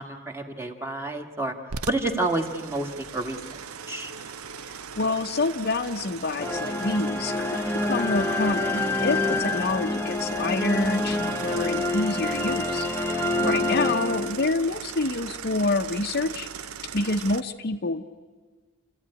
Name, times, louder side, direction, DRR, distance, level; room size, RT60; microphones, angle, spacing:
voice 1, 0.0-1.5 1.9-3.6 3.9-4.1 9.3-9.4 13.1-13.5, right 2 dB, 10° right, 5 dB, 1.6 m, -30 dB
sound 1, 1.7-17.4, right 6 dB, 75° right, 0.8 m, -39 dB
voice 2, 5.0-12.9 13.4-16.5 16.9-18.1, left 3 dB, 45° left, 7 dB, 0.8 m, -27 dB
sound 2, 6.4-14.7, left 2 dB, 10° left, 1.0 m, -27 dB
28.0 x 14.5 x 9.8 m, 1.4 s
head